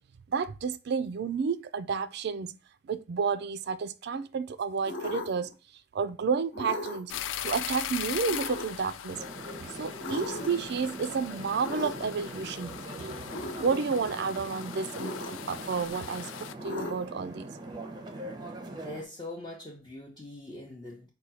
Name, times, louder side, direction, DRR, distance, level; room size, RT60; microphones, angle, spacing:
voice 1, 0.3-2.6 2.8-5.5 5.9-7.1 7.4-9.2 9.6-17.5, right 5 dB, 55° right, 0.4 m, -31 dB
sound 1, 4.9-5.5 6.5-7.2 8.2-8.9 10.0-10.7 11.6-12.3 13.3-13.7 14.9-15.6 16.6-17.2, left 2 dB, 60° left, 1.1 m, -37 dB
sound 2, 7.1-16.5, left 10 dB, 75° left, 0.3 m, -40 dB
sound 3, 9.1-19.0, right 2 dB, 20° right, 0.7 m, -42 dB
voice 2, 18.7-21.1, left 1 dB, 20° left, 0.7 m, -42 dB
4.8 x 2.3 x 4.1 m
head